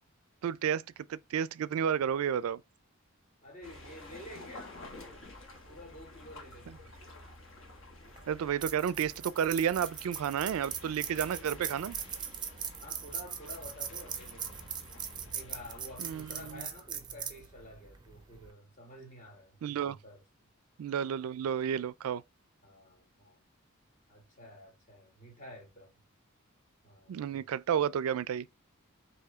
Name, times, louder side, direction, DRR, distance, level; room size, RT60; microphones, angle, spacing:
voice 1, 0.4-0.8 1.1-2.6 8.3-12.0 16.0-16.7 19.6-20.0 20.8-22.2 27.1-28.5, right 8 dB, 85° right, 0.3 m, -31 dB
voice 2, 3.4-5.3 5.7-6.9 12.8-14.7 15.3-20.2 22.6-23.4 24.1-26.0 26.8-27.4, left 1 dB, 35° left, 1.9 m, -50 dB
sound 1, 3.6-16.6, left 2 dB, 60° left, 1.4 m, -51 dB
sound 2, 8.1-18.5, right 7 dB, 20° right, 0.5 m, -41 dB
4.8 x 3.1 x 3.5 m
head